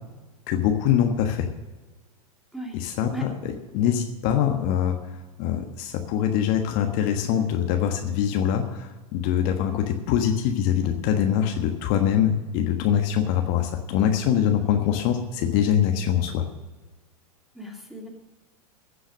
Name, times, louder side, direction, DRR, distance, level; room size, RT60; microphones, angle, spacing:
voice 1, 0.5-1.5 2.7-3.1 3.7-5.0 5.4-16.4, left 9 dB, 45° left, 4 dB, 1.4 m, -23 dB
voice 2, 17.5-18.1, equal, ahead, 1 dB, 2.7 m, -36 dB
15.0 x 7.9 x 6.4 m, 1.2 s
hypercardioid pair, 100°, 19 cm